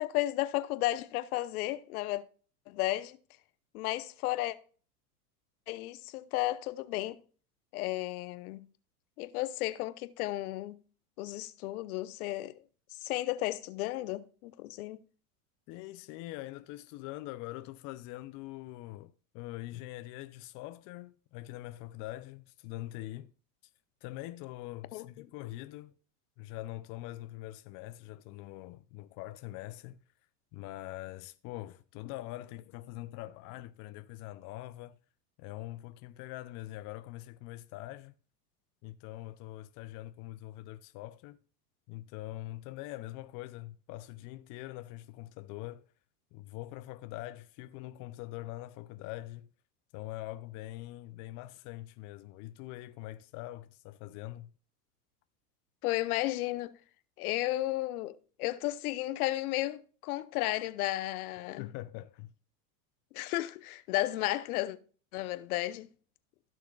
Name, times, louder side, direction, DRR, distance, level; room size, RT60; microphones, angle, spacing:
voice 1, 0.0-2.2 2.7-3.2 3.7-4.6 5.7-7.2 7.7-8.6 9.2-10.7 11.2-12.6 13.0-15.0 24.9-25.2 55.8-56.7 57.2-61.7 63.1-64.8 65.1-65.9, left 17 dB, 65° left, 0.9 m, -33 dB
voice 2, 15.7-23.3 24.0-25.9 26.4-30.0 30.5-35.0 35.4-38.1 38.8-41.4 41.9-45.8 46.3-49.5 49.9-54.5 61.6-62.3, left 16 dB, 40° left, 0.6 m, -43 dB
15.5 x 6.4 x 2.4 m
hypercardioid pair, 100°, 48 cm